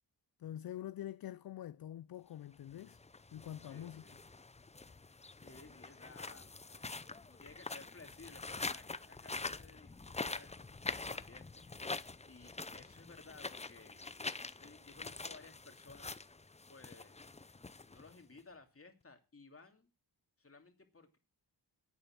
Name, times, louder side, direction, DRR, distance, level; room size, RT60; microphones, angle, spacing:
voice 1, 0.4-3.0 3.3-4.0, left 11 dB, 55° left, 0.5 m, -45 dB
sound 1, 2.7-18.4, left 3 dB, 15° left, 0.6 m, -45 dB
voice 2, 3.7-4.2 5.0-6.5 7.3-11.6 12.2-14.0 14.6-16.1 16.7-17.2 17.9-19.9 20.4-21.2, left 3 dB, 30° left, 2.6 m, -58 dB
11.5 x 8.8 x 5.9 m
cardioid pair, 80°, 43 cm